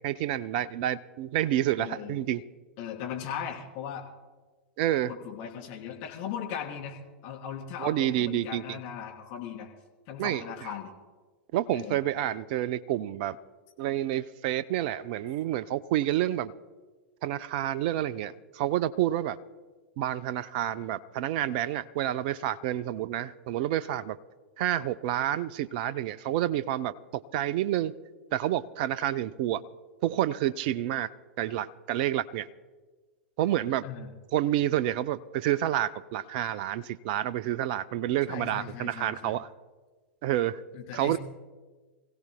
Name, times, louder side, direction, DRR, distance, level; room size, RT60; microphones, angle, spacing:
voice 1, 0.0-2.4 4.8-5.1 7.8-8.8 10.2-10.4 11.5-13.4 13.8-16.5 17.2-19.4 20.0-24.2 24.6-27.9 28.3-29.6 30.0-31.1 31.4-32.5 33.4-33.9 34.3-39.5 40.2-40.6 40.9-41.2, right 12 dB, 50° right, 0.5 m, -29 dB
voice 2, 1.8-2.2 2.8-4.1 5.1-7.0 7.2-9.7 10.1-10.9 11.7-12.0 33.8-34.1 38.3-39.4 40.7-41.2, left 8 dB, 50° left, 3.1 m, -38 dB
26.5 x 16.5 x 2.2 m
figure-of-eight pair, 95°, 6 cm